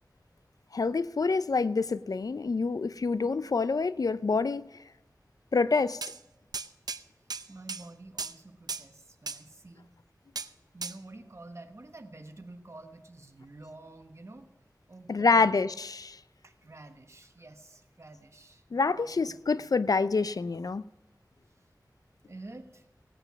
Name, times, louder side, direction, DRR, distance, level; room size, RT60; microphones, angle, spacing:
voice 1, 0.7-4.7 5.5-6.0 15.1-16.2 18.7-20.8, left 4 dB, 65° left, 0.4 m, -27 dB
sound 1, 6.0-6.2 6.5-7.0 7.3-7.9 8.2-8.3 8.7-8.8 9.3-9.4 10.3-10.5 10.8-11.0, right 4 dB, 80° right, 0.5 m, -36 dB
voice 2, 7.5-9.9 10.7-14.5 14.9-15.5 16.4-19.4 22.3-22.9, right 2 dB, 45° right, 1.2 m, -49 dB
17.0 x 9.0 x 5.9 m
wide cardioid pair, 70°, 7 cm